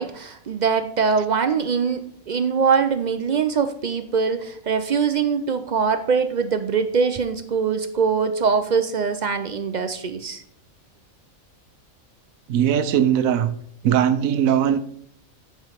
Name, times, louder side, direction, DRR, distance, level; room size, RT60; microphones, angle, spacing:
voice 1, 0.0-10.4, right 5 dB, 60° right, 0.4 m, -22 dB
voice 2, 12.5-13.6 13.8-14.8, right 9 dB, 80° right, 1.1 m, -19 dB
9.4 x 5.1 x 5.0 m
omnidirectional pair, 1.4 m